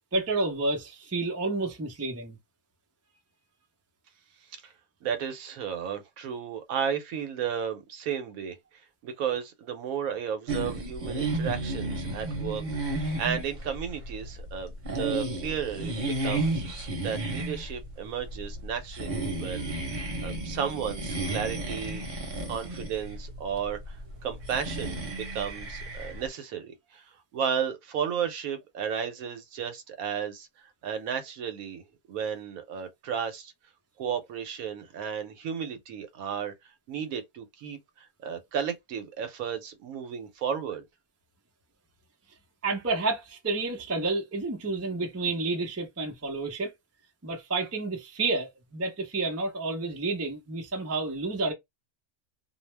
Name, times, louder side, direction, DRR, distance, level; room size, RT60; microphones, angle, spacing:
voice 1, 0.1-2.4 42.6-46.7 47.2-51.5, right 3 dB, 25° right, 0.3 m, -30 dB
voice 2, 5.0-8.6 9.0-16.6 17.0-19.8 20.2-22.1 22.5-24.0 24.2-30.5 30.8-33.5 34.0-40.9, right 7 dB, 75° right, 1.1 m, -33 dB
sound 1, 10.5-26.3, right 2 dB, 40° right, 0.8 m, -33 dB
2.6 x 2.0 x 3.2 m
omnidirectional pair, 1.5 m